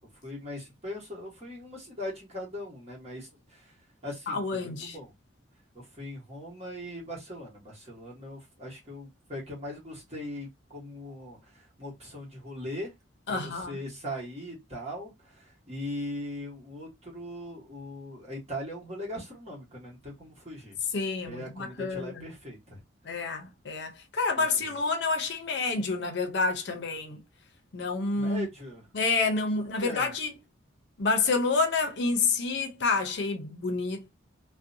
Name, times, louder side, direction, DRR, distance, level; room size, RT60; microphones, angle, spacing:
voice 1, 0.2-3.7 4.0-5.1 5.7-12.9 13.3-20.8 21.2-22.8 24.4-24.5 28.1-28.8 29.8-30.1, left 1 dB, 35° right, 1.2 m, -40 dB
voice 2, 4.3-5.0 13.3-13.8 20.9-22.3 23.0-27.2 27.7-28.5 28.9-30.3 31.0-34.1, left 3 dB, 60° left, 0.6 m, -28 dB
2.6 x 2.1 x 2.6 m
head